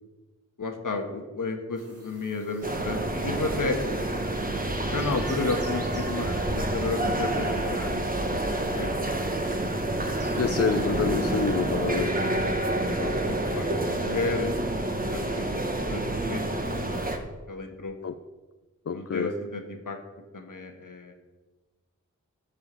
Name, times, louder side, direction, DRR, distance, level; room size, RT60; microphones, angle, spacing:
voice 1, 0.6-3.8 4.9-9.0 9.3-9.5 12.4-12.6 13.0-17.1 17.5-17.9 18.9-20.0 20.3-21.1, left 3 dB, 80° left, 4 dB, 1.6 m, -33 dB
sound 1, 1.7-12.0, right 1 dB, 50° right, 2.6 m, -50 dB
sound 2, 2.6-17.2, right 1 dB, 25° right, 1.4 m, -28 dB
voice 2, 10.4-12.1 18.0-18.1 18.9-19.3, left 5 dB, 50° left, 10 dB, 0.5 m, -27 dB
13.5 x 5.2 x 7.5 m, 1.2 s
wide cardioid pair, 80°, 32 cm